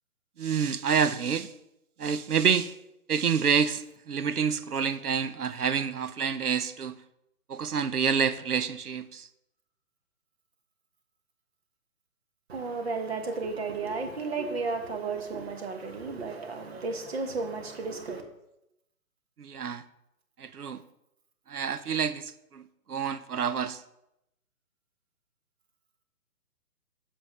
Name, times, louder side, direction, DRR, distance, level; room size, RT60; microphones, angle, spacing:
voice 1, 0.4-1.5 2.0-2.7 3.1-7.0 7.5-9.3 19.4-19.8 20.4-20.8 21.5-22.6 22.9-23.8, right 6 dB, 80° right, 0.7 m, -28 dB
voice 2, 12.5-18.2, right 4 dB, 45° right, 1.2 m, -33 dB
7.5 x 6.3 x 3.1 m
figure-of-eight pair, 135°, 45 cm